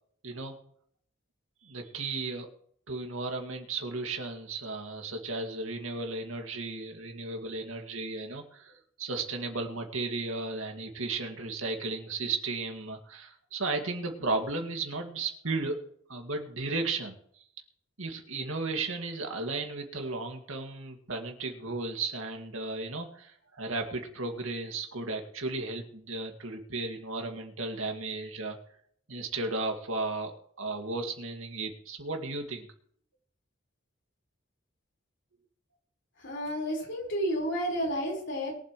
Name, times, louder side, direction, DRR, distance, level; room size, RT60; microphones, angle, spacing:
voice 1, 0.2-0.5 1.6-2.5 2.9-15.8 16.1-17.1 18.0-28.6 29.1-32.7, right 3 dB, 85° right, 3 dB, 2.1 m, -34 dB
voice 2, 36.2-38.5, equal, 60° left, -2 dB, 4.7 m, -31 dB
22.5 x 7.9 x 3.2 m, 0.64 s
head